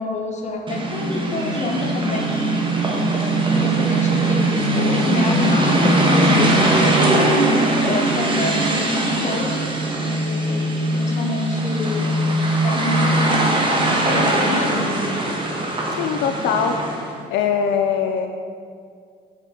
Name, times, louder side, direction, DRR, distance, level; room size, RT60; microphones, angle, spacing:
voice 1, 0.0-2.3 3.5-9.7 10.0-12.2 12.6-15.1, left 2 dB, 40° left, 2 dB, 0.9 m, -27 dB
sound 1, 0.7-17.1, right 1 dB, 25° right, 1.0 m, -20 dB
voice 2, 16.0-16.8 17.3-18.3, left 7 dB, 70° left, 4 dB, 0.4 m, -21 dB
6.4 x 4.1 x 3.7 m, 2.2 s
cardioid pair, 90°, 18 cm